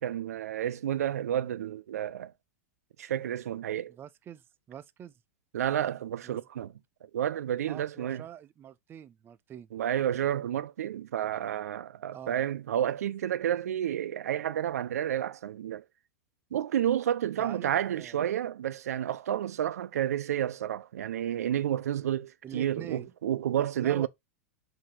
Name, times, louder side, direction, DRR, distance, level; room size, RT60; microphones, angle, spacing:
voice 1, 0.0-2.3 3.0-3.9 5.5-6.7 7.0-8.2 9.7-15.8 16.5-24.1, right 10 dB, 80° right, 0.5 m, -30 dB
voice 2, 3.9-5.2 6.2-6.4 7.7-9.7 12.1-12.4 17.4-18.3 22.4-23.1 23.5-24.1, right 10 dB, 25° right, 0.5 m, -45 dB
7.5 x 2.9 x 4.8 m
hypercardioid pair, 110°, 8 cm